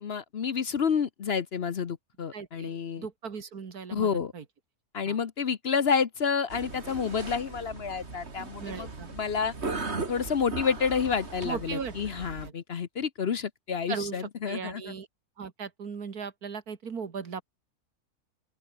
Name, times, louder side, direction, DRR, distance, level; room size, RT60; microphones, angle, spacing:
voice 1, 0.0-3.1 3.9-4.3 4.9-9.5 10.1-14.8, left 6 dB, 50° left, 1.0 m, -29 dB
voice 2, 2.3-4.4 5.1-5.2 8.4-9.1 11.4-12.2 12.4-12.5 13.9-15.1 15.4-17.4, right 6 dB, 85° right, 2.4 m, -38 dB
sound 1, 6.5-12.5, right 3 dB, 45° right, 2.8 m, -38 dB
open air
omnidirectional pair, 1.6 m